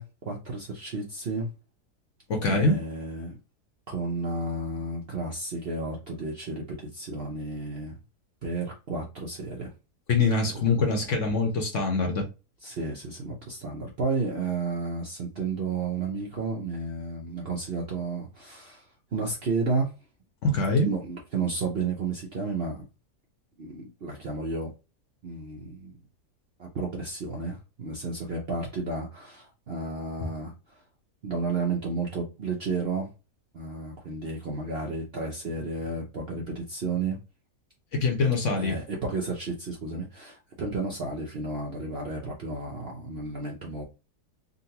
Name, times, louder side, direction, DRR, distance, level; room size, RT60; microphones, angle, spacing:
voice 1, 0.0-1.5 2.5-3.4 3.9-8.0 8.4-9.7 12.6-18.9 19.1-19.9 20.8-22.9 23.6-24.7 25.2-26.0 26.6-30.8 31.2-33.1 33.5-37.2 38.6-43.8, right 3 dB, 55° right, 0.7 m, -32 dB
voice 2, 2.3-2.8 10.1-12.3 20.4-20.9 37.9-38.8, left 3 dB, 55° left, 0.9 m, -24 dB
3.8 x 2.2 x 2.7 m
omnidirectional pair, 1.7 m